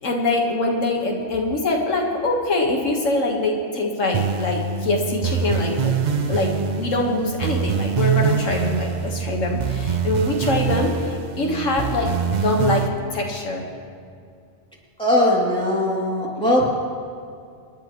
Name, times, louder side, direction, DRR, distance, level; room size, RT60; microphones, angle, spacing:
voice 1, 0.0-6.0 6.3-12.1 12.4-12.8 13.1-13.6, left 2 dB, 85° left, 0 dB, 1.9 m, -23 dB
sound 1, 4.1-12.9, right 6 dB, 45° right, 0.7 m, -24 dB
voice 2, 15.0-16.6, left 1 dB, 5° left, -5 dB, 2.8 m, -19 dB
27.0 x 10.5 x 3.1 m, 2.3 s
omnidirectional pair, 1.3 m